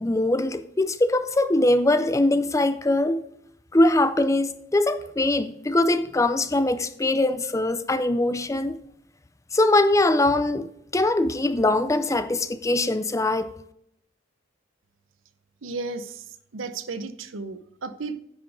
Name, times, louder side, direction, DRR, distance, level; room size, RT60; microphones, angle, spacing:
voice 1, 0.0-3.2 3.7-8.8 9.5-13.5, left 2 dB, 15° left, 0.4 m, -22 dB
voice 2, 15.6-16.2 16.5-18.1, right 3 dB, 80° right, 0.8 m, -34 dB
10.0 x 6.2 x 4.8 m
head